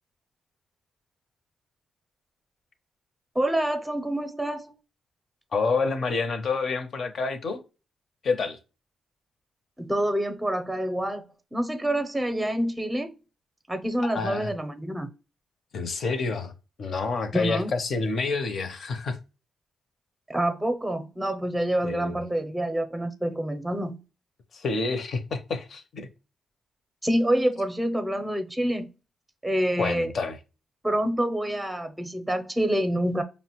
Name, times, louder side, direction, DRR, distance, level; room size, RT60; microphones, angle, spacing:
voice 1, 3.3-4.7 9.8-13.1 13.7-15.1 17.3-17.7 20.3-24.0 27.0-28.9 29.4-30.1 30.8-33.2, right 1 dB, 10° right, 0.6 m, -27 dB
voice 2, 5.5-7.6 8.2-8.6 14.1-14.5 15.7-16.5 16.8-19.2 21.8-22.1 24.5-26.1 29.8-30.4, left 4 dB, 60° left, 0.7 m, -28 dB
5.1 x 2.1 x 2.9 m
cardioid pair, 75°, 0 cm